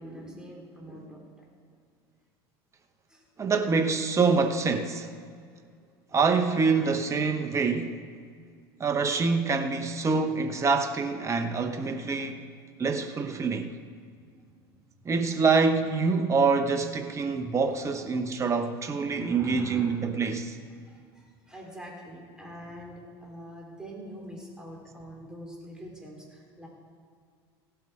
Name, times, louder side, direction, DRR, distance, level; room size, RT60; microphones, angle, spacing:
voice 1, 0.0-1.5 3.1-3.3 14.2-15.4 17.7-17.8 19.1-20.0 20.7-26.7, right 1 dB, 5° right, 3.7 m, -44 dB
voice 2, 3.4-5.1 6.1-8.0 8.8-12.4 12.8-13.7 15.0-20.6, right 4 dB, 20° right, 0.9 m, -26 dB
16.5 x 8.0 x 4.8 m
hypercardioid pair, 85°, 13 cm